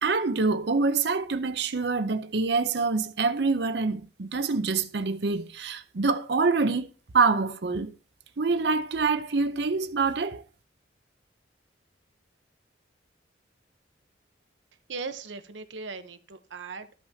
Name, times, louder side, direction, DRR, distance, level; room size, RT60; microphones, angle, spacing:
voice 1, 0.0-7.9 8.4-10.4, right 4 dB, 65° right, 0.7 m, -26 dB
voice 2, 14.9-16.9, right 4 dB, 90° right, 0.9 m, -38 dB
14.0 x 5.7 x 2.8 m
head